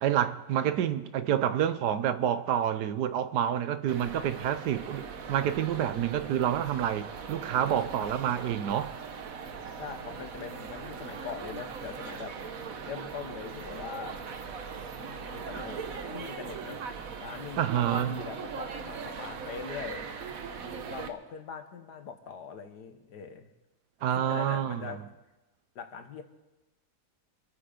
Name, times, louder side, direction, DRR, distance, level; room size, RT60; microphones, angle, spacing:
voice 1, 0.0-8.9 17.6-18.2 24.0-25.0, right 10 dB, 85° right, 1.4 m, -28 dB
sound 1, 3.9-21.1, right 5 dB, 60° right, 1.4 m, -40 dB
voice 2, 9.8-12.4 12.8-14.2 15.0-20.1 20.3-20.5 20.8-23.5 24.2-25.0 25.8-26.2, left 6 dB, 90° left, 1.9 m, -42 dB
26.0 x 9.0 x 5.2 m
omnidirectional pair, 1.7 m